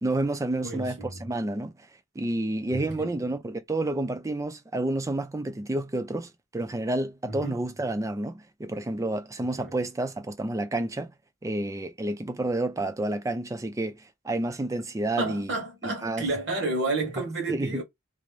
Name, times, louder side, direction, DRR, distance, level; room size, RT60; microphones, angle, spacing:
voice 1, 0.0-1.7 2.2-11.1 11.4-15.5 15.8-16.2 17.5-17.8, right 2 dB, 15° right, 0.3 m, -30 dB
voice 2, 0.6-1.2 2.7-3.2 7.3-7.6 9.5-9.7 15.2-17.8, right 2 dB, 60° right, 1.0 m, -31 dB
2.5 x 2.0 x 3.0 m
head